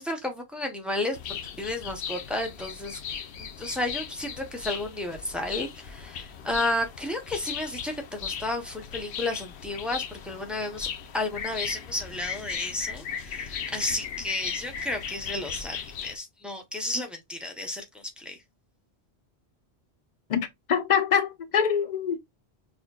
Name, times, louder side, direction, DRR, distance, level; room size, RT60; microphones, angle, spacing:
voice 1, 0.0-3.0 3.4-10.9 11.1-18.3, left 2 dB, ahead, 0.5 m, -32 dB
sound 1, 1.1-16.2, left 7 dB, 90° left, 0.9 m, -37 dB
voice 2, 20.3-22.2, left 7 dB, 50° left, 0.6 m, -25 dB
5.8 x 2.1 x 2.3 m
omnidirectional pair, 1.1 m